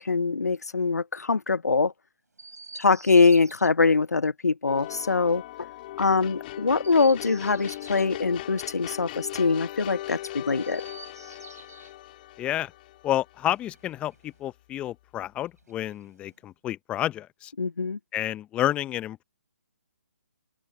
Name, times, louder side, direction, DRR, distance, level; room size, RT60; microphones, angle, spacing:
voice 1, 0.0-1.9 2.7-5.4 6.0-10.8 17.6-18.0, left 4 dB, 85° left, 0.6 m, -23 dB
Chirp tweet, 2.3-3.7 6.7-8.1 10.5-12.0 13.4-14.5 15.5-16.5, right 3 dB, 85° right, 5.3 m, -49 dB
sound 1, 4.7-13.9, left 15 dB, 35° left, 3.7 m, -39 dB
voice 2, 12.4-12.7 13.0-17.5 18.1-19.2, left 13 dB, 15° left, 0.6 m, -30 dB
open air
figure-of-eight pair, 145°, 9 cm